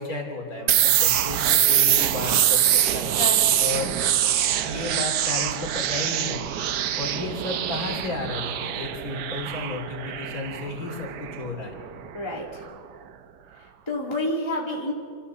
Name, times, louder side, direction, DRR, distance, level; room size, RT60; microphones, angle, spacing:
voice 1, 0.0-2.6 2.9-3.1 3.6-3.9 4.6-11.7, left 2 dB, 45° left, 0 dB, 3.9 m, -33 dB
sound 1, 0.7-12.3, right 11 dB, 65° right, 1.2 m, -24 dB
voice 2, 3.2-3.9 12.1-12.5 13.9-14.9, left 1 dB, 15° left, -3 dB, 2.3 m, -29 dB
29.0 x 13.5 x 7.1 m, 2.1 s
omnidirectional pair, 2.1 m